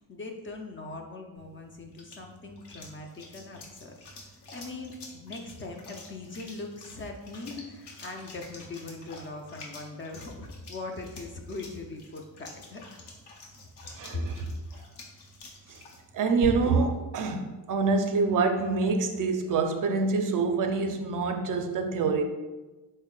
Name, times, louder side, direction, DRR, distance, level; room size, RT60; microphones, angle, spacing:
voice 1, 0.0-12.8 14.1-14.2 14.6-14.8, left 3 dB, 30° left, 2 dB, 0.4 m, -41 dB
sound 1, 1.4-16.9, equal, 80° left, 0.8 m, -46 dB
voice 2, 14.0-14.5 15.7-15.8 16.1-22.2, right 4 dB, 55° right, 5 dB, 0.5 m, -26 dB
3.5 x 2.1 x 3.7 m, 1.2 s
cardioid pair, 85°, 40 cm